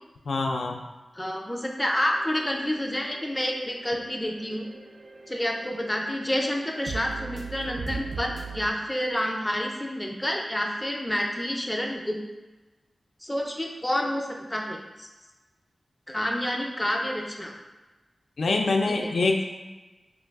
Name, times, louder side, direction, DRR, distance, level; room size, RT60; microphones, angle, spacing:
voice 1, 0.3-0.8 18.4-19.4, left 3 dB, 90° left, 2 dB, 0.3 m, -25 dB
voice 2, 1.2-4.7 5.3-12.2 13.2-15.1 16.1-17.5 18.9-19.1, equal, 10° left, 0 dB, 0.4 m, -29 dB
sound 1, 1.9-8.7, right 5 dB, 70° right, 0.3 m, -40 dB
3.1 x 2.3 x 3.4 m, 1.1 s
wide cardioid pair, 120°, 0 cm